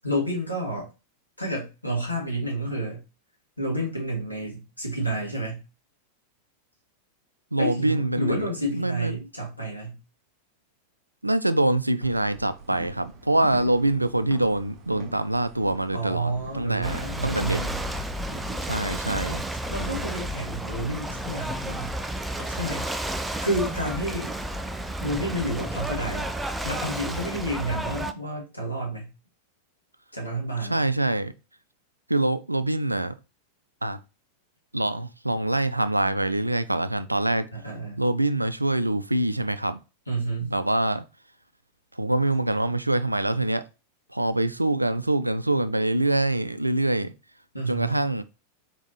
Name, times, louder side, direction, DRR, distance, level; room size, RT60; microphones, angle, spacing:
voice 1, 0.0-0.9 1.4-3.0 3.6-5.6 7.6-10.0 15.9-17.8 19.7-21.9 22.5-22.9 23.4-24.3 25.0-26.3 26.6-29.1 30.1-30.8 37.5-38.0 40.1-40.5 47.5-48.0, right 1 dB, 90° left, 1.7 m, -30 dB
voice 2, 7.5-9.2 11.2-17.6 18.6-19.4 30.6-31.3 32.1-33.2 33.8-34.0 34.7-37.5 38.0-39.8 40.4-41.1 41.9-43.6 44.1-47.1 47.7-48.2, right 1 dB, 85° right, 0.3 m, -25 dB
sound 1, 12.0-20.3, right 3 dB, 30° right, 1.1 m, -43 dB
Ocean / Boat Water vehicle, 16.8-28.1, right 1 dB, 5° right, 0.4 m, -32 dB
sound 2, 19.6-20.5 22.4-22.9 23.9-24.4 25.7-26.1 27.3-27.7, left 5 dB, 35° left, 1.0 m, -46 dB
4.0 x 4.0 x 3.1 m
figure-of-eight pair, 90°, 0 cm